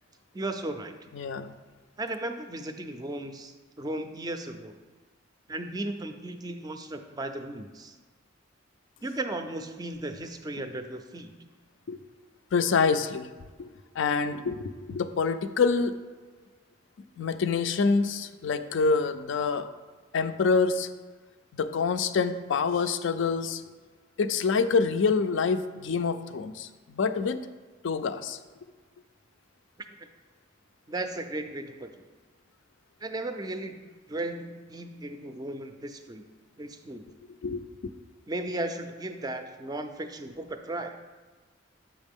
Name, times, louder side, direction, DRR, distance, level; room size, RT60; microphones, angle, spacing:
voice 1, 0.3-0.9 2.0-4.7 5.5-8.0 9.0-11.3 30.9-31.9 33.0-36.2 36.6-37.0 38.3-41.0, right 2 dB, 20° right, 7 dB, 0.4 m, -35 dB
voice 2, 1.1-1.5 11.9-12.0 12.5-13.3 13.6-13.7 14.0-16.0 17.2-19.7 20.1-20.9 21.5-23.6 24.2-27.4 27.8-28.4 37.4-37.6, left 4 dB, 65° left, 11 dB, 0.4 m, -26 dB
7.2 x 5.7 x 3.5 m, 1.4 s
head